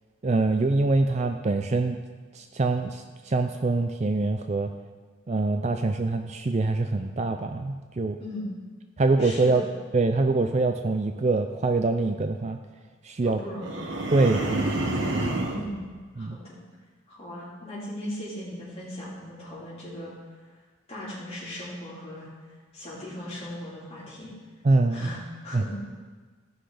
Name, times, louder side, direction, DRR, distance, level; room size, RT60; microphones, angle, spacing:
voice 1, 0.2-2.0 2.3-4.7 5.3-8.2 9.0-9.6 9.9-12.6 13.0-13.4 14.1-15.4 16.2-16.4 24.6-25.1 25.5-25.6, right 3 dB, 30° right, 6 dB, 0.4 m, -24 dB
voice 2, 8.2-8.5 9.2-9.7 13.2-13.9 15.4-15.8 16.2-16.6 17.1-20.1 20.9-22.3 22.7-24.3 24.9-25.7, left 1 dB, 30° left, -8 dB, 3.6 m, -38 dB
sound 1, 13.6-15.7, right 2 dB, 60° right, 1.2 m, -29 dB
15.0 x 5.9 x 4.9 m, 1.4 s
head